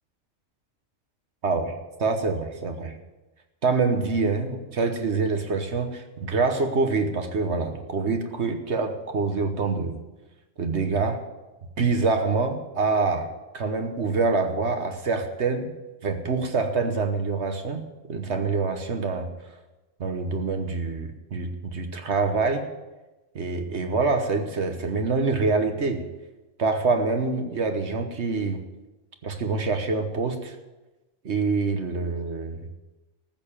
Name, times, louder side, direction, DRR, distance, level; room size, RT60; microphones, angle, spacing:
voice 1, 1.4-2.9 3.6-10.0 10.6-11.2 11.8-15.7 16.0-19.3 20.0-22.7 23.3-26.0 26.6-28.6 29.2-30.6 31.2-32.6, right 4 dB, 60° right, 6 dB, 1.4 m, -26 dB
14.0 x 6.8 x 8.8 m, 1.1 s
omnidirectional pair, 1.3 m